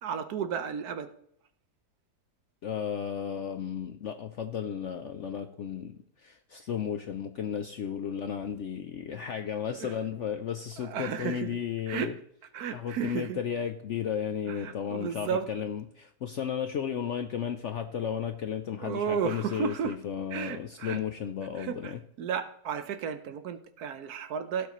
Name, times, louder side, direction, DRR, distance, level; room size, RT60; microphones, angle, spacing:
voice 1, 0.0-1.1 9.1-9.2 9.7-9.9 10.8-11.6 11.9-12.1 12.5-13.4 14.5-15.5 18.8-20.0 20.3-21.0 21.5-24.7, right 7 dB, 70° right, 11 dB, 1.2 m, -33 dB
voice 2, 2.6-5.9 6.2-12.1 12.7-22.0, left 8 dB, 65° left, 6 dB, 0.7 m, -34 dB
16.5 x 8.3 x 3.1 m, 0.68 s
omnidirectional pair, 1.8 m